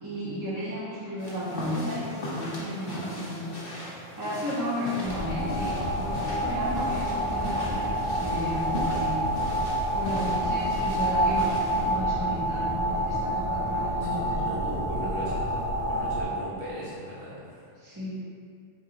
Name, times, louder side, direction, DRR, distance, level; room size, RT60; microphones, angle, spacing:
voice 1, 0.0-3.6 4.2-9.2 9.9-14.6 17.8-18.1, equal, 20° right, -10 dB, 0.6 m, -33 dB
sound 1, 1.2-11.9, left 1 dB, 55° left, 1.2 m, -39 dB
sound 2, 5.0-16.2, right 1 dB, 30° left, 0.7 m, -28 dB
voice 2, 14.0-15.5 15.9-17.6, equal, 55° right, -8 dB, 1.3 m, -38 dB
4.0 x 3.0 x 3.8 m, 2.4 s
omnidirectional pair, 1.2 m